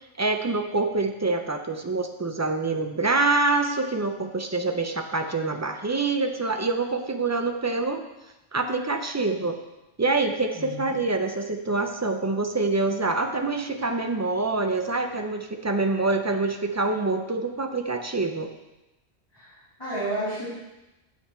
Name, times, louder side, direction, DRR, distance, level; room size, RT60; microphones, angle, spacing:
voice 1, 0.2-8.0 8.5-9.6 10.0-18.5, right 3 dB, 25° right, 5 dB, 0.3 m, -26 dB
voice 2, 10.5-11.0 19.3-20.5, right 1 dB, 20° left, -13 dB, 3.2 m, -32 dB
9.0 x 5.9 x 4.4 m, 0.99 s
omnidirectional pair, 1.1 m